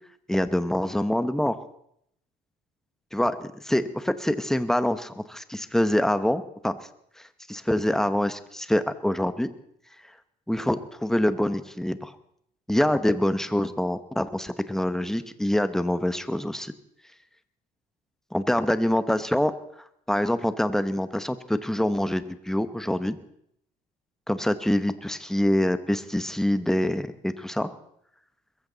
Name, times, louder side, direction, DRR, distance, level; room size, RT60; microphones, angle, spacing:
voice 1, 0.3-1.6 3.1-6.8 7.5-9.5 10.5-12.1 12.7-16.7 18.3-19.5 20.1-23.2 24.3-27.7, left 1 dB, 5° left, 12 dB, 1.0 m, -25 dB
22.0 x 14.5 x 4.0 m, 0.72 s
cardioid pair, 110°, 17 cm